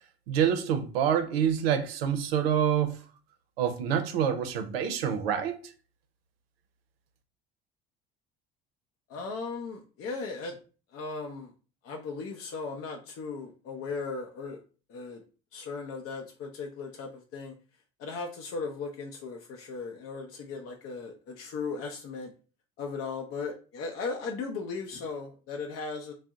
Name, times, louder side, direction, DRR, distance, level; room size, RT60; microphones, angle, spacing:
voice 1, 0.3-3.0 3.6-5.6, right 8 dB, 85° right, 0.5 m, -26 dB
voice 2, 9.1-10.6 10.9-11.5 11.8-14.6 14.9-15.2 15.5-17.5 18.0-22.3 22.8-26.1, left 4 dB, 50° left, 0.6 m, -37 dB
2.6 x 2.0 x 3.5 m
hypercardioid pair, 60°, 29 cm